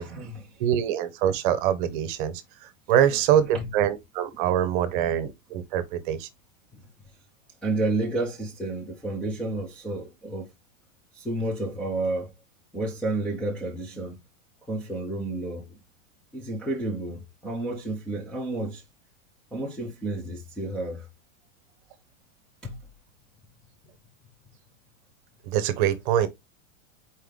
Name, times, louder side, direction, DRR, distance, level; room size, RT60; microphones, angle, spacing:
voice 1, 0.0-0.6 3.0-3.2 3.5-3.7 6.7-6.9 7.6-10.5 11.1-12.3 12.7-14.2 14.7-15.8 16.3-18.8 19.5-21.1 22.6-22.8, right 2 dB, 5° left, 0.5 m, -31 dB
voice 2, 0.6-2.3 2.9-6.3 25.5-26.3, right 10 dB, 40° right, 0.9 m, -24 dB
4.5 x 3.2 x 3.6 m
supercardioid pair, 150°, 38 cm